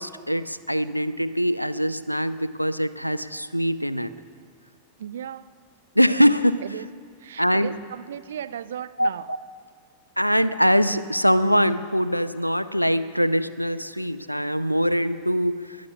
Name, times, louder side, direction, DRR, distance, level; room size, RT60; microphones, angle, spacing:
voice 1, 0.0-4.1 6.0-6.6 7.4-7.8 9.0-9.1 10.2-15.8, equal, 90° left, 15 dB, 0.5 m, -22 dB
voice 2, 5.0-5.6 6.6-6.9 7.2-9.3, right 9 dB, 60° right, 14 dB, 0.5 m, -36 dB
21.5 x 9.6 x 6.8 m, 2.1 s
figure-of-eight pair, 90°, 0 cm